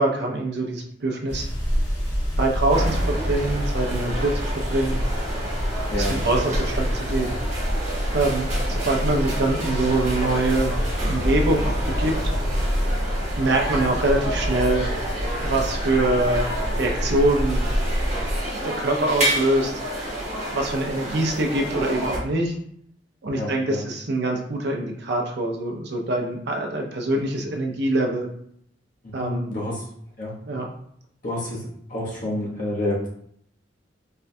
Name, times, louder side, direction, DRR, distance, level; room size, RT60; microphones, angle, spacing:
voice 1, 0.0-1.5 2.4-5.0 6.0-7.3 8.1-10.8 11.1-12.1 13.4-14.9 15.4-17.6 18.2-18.3 18.6-19.7 20.5-22.5 23.2-28.3 29.1-29.5 30.5-30.7, right 2 dB, 65° right, 2 dB, 0.6 m, -24 dB
sound 1, 1.3-18.4, equal, 85° left, 1.3 m, -27 dB
sound 2, 2.7-22.2, right 1 dB, 40° right, 1.0 m, -30 dB
voice 2, 23.3-23.8 29.2-29.8 30.2-30.3 31.2-33.1, left 1 dB, 50° left, -4 dB, 0.9 m, -29 dB
4.3 x 2.2 x 2.6 m, 0.67 s
head